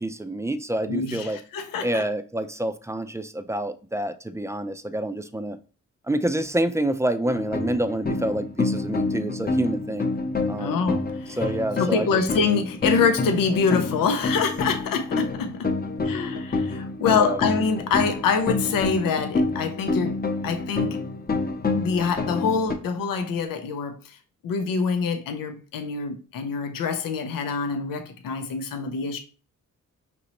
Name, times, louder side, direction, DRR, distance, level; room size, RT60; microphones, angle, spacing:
voice 1, 0.0-1.4 1.8-5.6 6.1-10.1 10.5-10.8 11.4-12.2 17.0-17.4, right 1 dB, 10° right, 0.4 m, -27 dB
voice 2, 0.9-2.1 10.6-11.5 11.8-15.7 16.0-20.2 20.4-21.0 21.7-24.2 24.4-29.2, left 5 dB, 90° left, 0.6 m, -25 dB
sound 1, 7.2-22.7, left 3 dB, 30° left, 0.7 m, -28 dB
5.1 x 3.0 x 2.9 m
cardioid pair, 65°, 32 cm